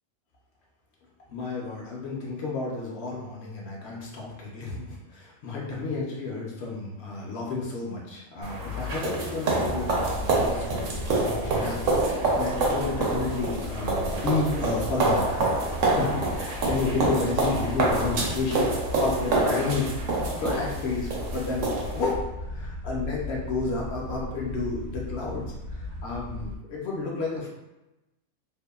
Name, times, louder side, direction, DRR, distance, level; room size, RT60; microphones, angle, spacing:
voice 1, 1.3-18.7 19.0-19.9 20.4-22.3 22.5-25.5 26.0-27.5, left 3 dB, 65° left, -3 dB, 0.8 m, -31 dB
sound 1, 8.4-22.1, right 2 dB, 85° right, 1.0 m, -27 dB
sound 2, 9.6-26.6, left 1 dB, 60° right, 1.0 m, -36 dB
2.7 x 2.2 x 2.3 m, 0.97 s
omnidirectional pair, 1.3 m